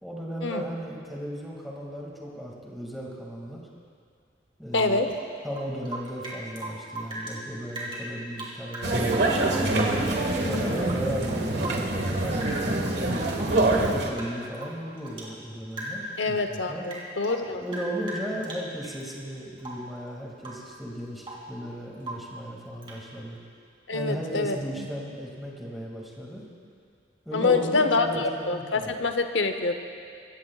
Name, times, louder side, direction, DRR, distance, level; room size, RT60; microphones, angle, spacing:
voice 1, 0.0-3.6 4.6-5.1 5.4-9.7 10.4-12.9 13.6-16.9 17.5-23.4 23.9-26.4 27.3-28.9, equal, ahead, -4 dB, 2.1 m, -36 dB
voice 2, 4.7-5.1 10.4-10.7 16.2-17.6 23.9-24.6 27.3-28.1 28.5-29.8, left 3 dB, 85° left, 7 dB, 0.8 m, -25 dB
Rain / Drip, 4.7-7.4 7.7-10.2 10.5-12.1 12.4-13.0 13.3-15.4 15.7-16.2 16.5-19.0 19.6-20.0 20.4-20.7 21.0-21.5 22.0-22.4 22.8-23.1, right 1 dB, 30° right, 2.7 m, -39 dB
sound 1, 8.8-14.1, right 2 dB, 65° right, 1.5 m, -25 dB
24.5 x 15.5 x 2.4 m, 2.3 s
head